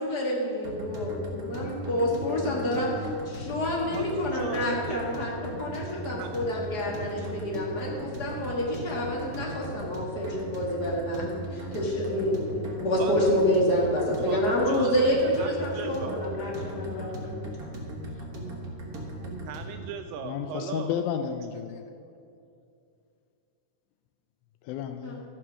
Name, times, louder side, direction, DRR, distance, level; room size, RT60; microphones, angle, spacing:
voice 1, 0.0-17.3 25.0-25.1, left 1 dB, 40° left, -3 dB, 1.4 m, -28 dB
sound 1, 0.6-19.8, right 1 dB, 65° right, 0.9 m, -38 dB
voice 2, 3.9-5.1 6.2-6.3 13.0-13.3 14.2-16.3 19.2-21.0, right 7 dB, 80° right, 7 dB, 2.1 m, -38 dB
voice 3, 18.2-18.6 20.2-21.8 24.6-25.2, left 8 dB, 85° left, 7 dB, 1.7 m, -33 dB
14.0 x 5.9 x 6.1 m, 2.5 s
omnidirectional pair, 4.0 m